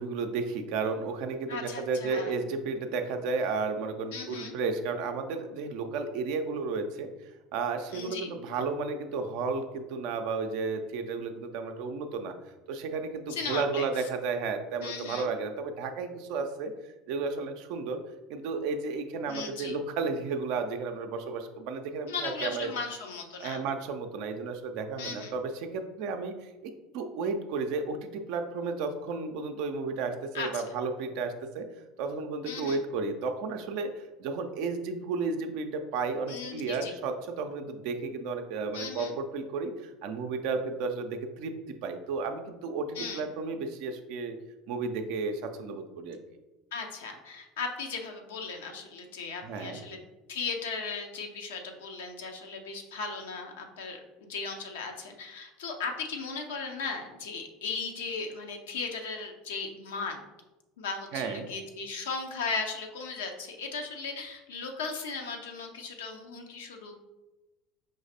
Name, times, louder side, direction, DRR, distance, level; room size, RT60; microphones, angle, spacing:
voice 1, 0.0-12.3 12.7-16.7 17.1-18.0 18.3-22.8 23.4-31.7 32.0-41.5 41.8-44.4 44.7-46.2 49.4-49.8 61.1-61.5, right 4 dB, 55° right, 6 dB, 0.4 m, -33 dB
voice 2, 1.5-2.4 4.1-4.5 7.9-8.3 13.3-13.9 14.8-15.3 19.3-19.7 22.1-23.6 25.0-25.3 30.3-30.6 32.5-32.8 36.3-36.9 38.7-39.1 43.0-43.3 46.7-50.0 50.3-60.2 60.8-67.0, left 4 dB, 70° left, 3 dB, 0.6 m, -37 dB
5.3 x 3.1 x 2.6 m, 1.1 s
figure-of-eight pair, 70°, 0 cm